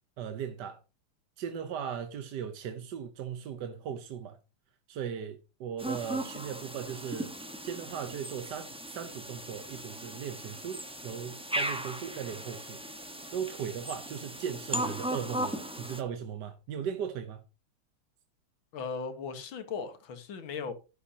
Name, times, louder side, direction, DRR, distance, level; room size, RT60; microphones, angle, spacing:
voice 1, 0.2-0.8 1.4-4.4 4.9-7.3 7.6-17.4, right 8 dB, 60° right, 1.3 m, -38 dB
sound 1, 5.8-16.0, right 1 dB, 5° right, 0.7 m, -37 dB
voice 2, 18.7-20.7, left 5 dB, 65° left, 2.2 m, -37 dB
11.0 x 10.5 x 2.8 m
omnidirectional pair, 2.3 m